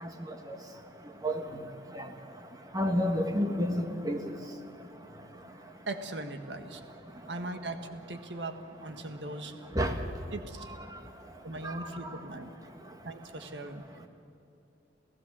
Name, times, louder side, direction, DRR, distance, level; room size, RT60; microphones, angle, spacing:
voice 1, 2.7-4.2 9.7-9.9 11.6-11.7, equal, 20° right, 5 dB, 1.5 m, -29 dB
voice 2, 5.9-6.8 7.3-9.5 10.3-10.7 11.4-12.5 13.0-13.8, right 2 dB, 75° right, 7 dB, 1.5 m, -39 dB
28.5 x 16.0 x 7.5 m, 2.8 s
head